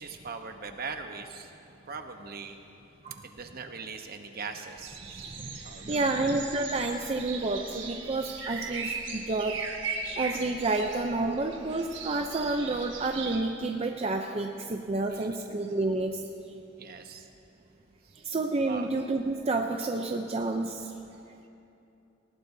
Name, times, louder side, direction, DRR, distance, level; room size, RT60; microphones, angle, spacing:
voice 1, 0.0-1.5 1.9-2.6 3.2-5.2 5.6-6.4 12.7-12.8 15.1-15.4 16.8-17.3 18.1-18.3 18.6-18.9, right 4 dB, 55° right, 6 dB, 1.0 m, -41 dB
sound 1, 4.8-13.4, right 5 dB, 70° right, 1.4 m, -38 dB
voice 2, 5.3-9.6 10.2-16.2 18.2-20.9, right 2 dB, 35° right, 3 dB, 0.5 m, -30 dB
19.0 x 18.5 x 2.7 m, 2.8 s
head